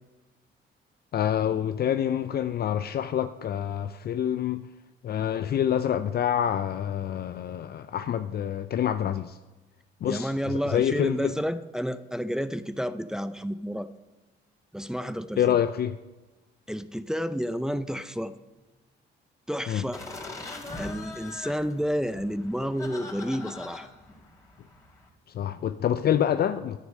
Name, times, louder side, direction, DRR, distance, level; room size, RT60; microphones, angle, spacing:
voice 1, 1.1-4.7 5.0-9.4 10.0-11.3 15.4-16.0 19.7-19.8 25.3-26.8, left 9 dB, 50° left, 0.5 m, -27 dB
voice 2, 10.1-13.9 14.7-15.4 16.7-18.3 19.5-20.0 20.8-23.9, equal, 5° right, 0.6 m, -30 dB
sound 1, 19.9-25.1, left 3 dB, 15° left, 3.3 m, -42 dB
10.5 x 9.7 x 6.5 m
cardioid pair, 90°, 20 cm